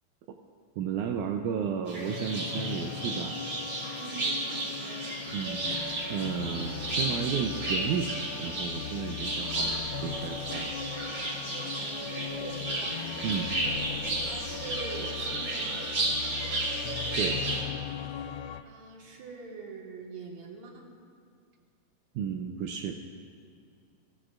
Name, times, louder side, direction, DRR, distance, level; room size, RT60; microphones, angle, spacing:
voice 1, 0.8-3.4 5.3-5.8 6.1-8.1 8.4-10.7 13.2-13.5 17.2-17.4 22.2-23.0, right 7 dB, 85° right, 3 dB, 2.1 m, -33 dB
sound 1, 1.9-17.6, right 2 dB, 40° right, 3.0 m, -33 dB
sound 2, 2.0-18.6, left 10 dB, 80° left, 1.8 m, -39 dB
voice 2, 4.0-5.0 11.6-13.0 13.6-14.0 14.2-15.9 18.6-20.9, right 4 dB, 65° right, 0 dB, 2.7 m, -44 dB
25.5 x 14.5 x 2.5 m, 2.3 s
omnidirectional pair, 3.4 m